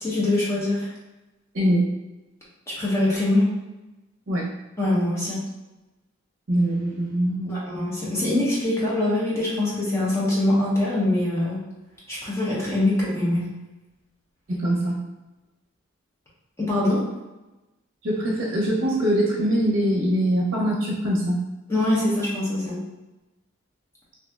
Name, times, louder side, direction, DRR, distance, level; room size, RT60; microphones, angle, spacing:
voice 1, 0.0-0.9 2.7-3.5 4.8-5.4 7.5-11.6 12.1-13.5 16.6-17.0 21.7-22.8, left 1 dB, 15° left, -7 dB, 0.9 m, -23 dB
voice 2, 6.5-7.6 14.5-15.0 18.0-21.4, right 1 dB, 70° right, -4 dB, 0.6 m, -23 dB
3.1 x 2.7 x 2.3 m, 1.1 s
head